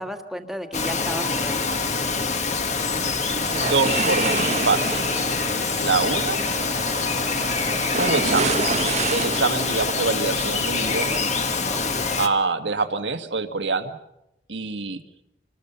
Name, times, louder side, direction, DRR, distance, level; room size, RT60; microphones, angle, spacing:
voice 1, 0.0-1.9 5.1-5.3 11.7-12.0, equal, ahead, 5 dB, 1.8 m, -34 dB
Bird vocalization bird call bird song, 0.7-12.3, left 4 dB, 40° left, 1.6 m, -25 dB
sound 1, 3.3-11.7, right 4 dB, 40° right, 1.2 m, -29 dB
voice 2, 3.6-5.0 5.8-6.4 8.0-8.6 9.1-11.2 12.2-14.0 14.5-15.0, right 4 dB, 85° right, 8 dB, 1.7 m, -25 dB
27.0 x 20.0 x 6.9 m, 0.85 s
head